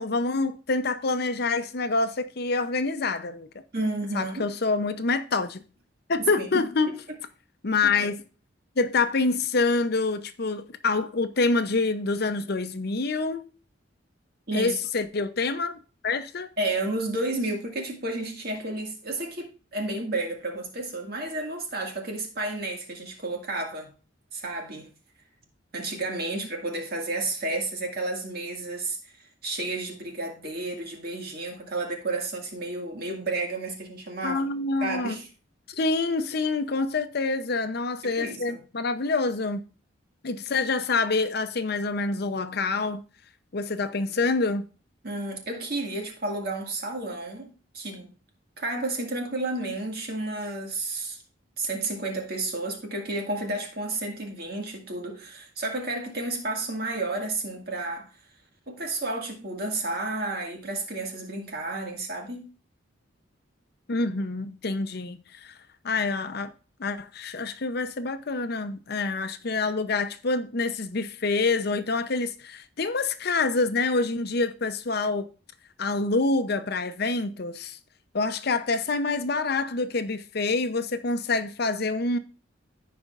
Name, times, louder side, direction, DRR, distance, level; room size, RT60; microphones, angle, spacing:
voice 1, 0.0-3.5 4.1-5.6 6.1-7.0 7.6-8.2 8.8-13.4 14.5-15.8 16.0-16.5 34.2-35.2 35.8-39.6 40.2-43.0 43.5-44.7 63.9-65.6 65.8-66.5 66.8-75.3 75.8-77.8 78.1-82.2, left 3 dB, 55° left, 0.7 m, -26 dB
voice 2, 3.7-4.5 6.4-6.7 7.8-7.9 14.5-14.7 16.6-23.9 24.3-24.9 25.7-34.5 34.8-35.3 38.0-38.6 45.0-47.5 47.7-48.1 48.6-51.2 51.6-58.1 58.7-62.5, right 2 dB, 55° right, 2.0 m, -31 dB
15.0 x 5.1 x 2.5 m
head